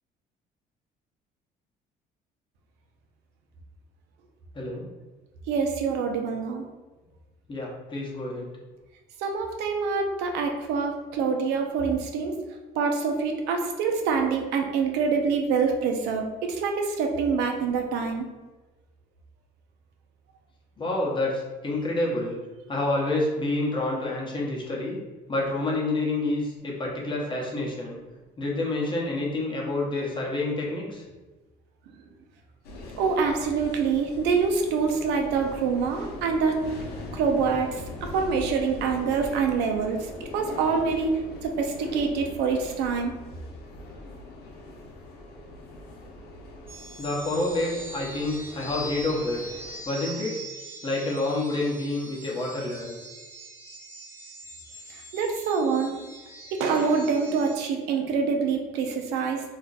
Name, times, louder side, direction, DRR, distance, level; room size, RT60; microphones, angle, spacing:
voice 1, 4.5-4.9 7.5-8.5 20.8-22.4 22.7-25.0 25.3-28.0 28.4-31.0 47.0-49.4 49.8-50.4 50.8-53.0, left 2 dB, 30° left, -3 dB, 0.9 m, -28 dB
voice 2, 5.5-6.6 9.2-12.3 12.8-18.3 33.0-36.6 37.1-43.2 54.9-55.9 56.5-59.4, right 5 dB, 90° right, 3 dB, 0.5 m, -26 dB
sound 1, 32.6-49.8, left 2 dB, 75° left, 0.7 m, -41 dB
sound 2, 46.7-57.6, right 1 dB, 15° right, 0.6 m, -42 dB
2.4 x 2.1 x 3.9 m, 1.2 s
cardioid pair, 110°, 17 cm